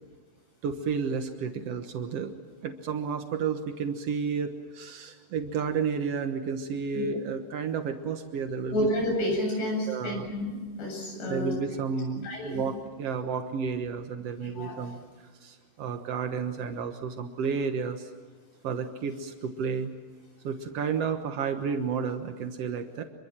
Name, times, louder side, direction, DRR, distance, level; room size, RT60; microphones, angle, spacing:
voice 1, 0.6-2.4 2.6-8.8 9.9-10.3 11.3-18.1 18.6-19.9 20.4-23.0, right 6 dB, 85° right, 6 dB, 1.3 m, -31 dB
voice 2, 8.7-11.5 12.2-12.6 14.4-14.8, left 1 dB, 80° left, 1 dB, 10.5 m, -30 dB
27.0 x 23.5 x 7.5 m, 1.4 s
omnidirectional pair, 4.8 m